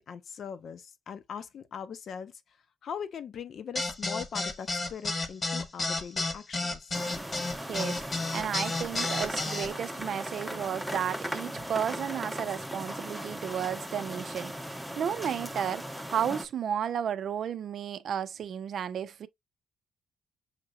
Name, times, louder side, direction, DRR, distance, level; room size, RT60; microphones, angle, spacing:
voice 1, 0.0-2.3 2.8-7.0, left 7 dB, 60° left, 0.7 m, -40 dB
sound 1, 3.7-9.7, left 2 dB, 30° left, 0.9 m, -31 dB
sound 2, 6.9-16.5, equal, ahead, 0.8 m, -38 dB
voice 2, 7.6-8.0 8.3-14.5 15.0-19.3, right 8 dB, 60° right, 0.5 m, -33 dB
6.5 x 2.9 x 2.4 m
cardioid pair, 90°, 0 cm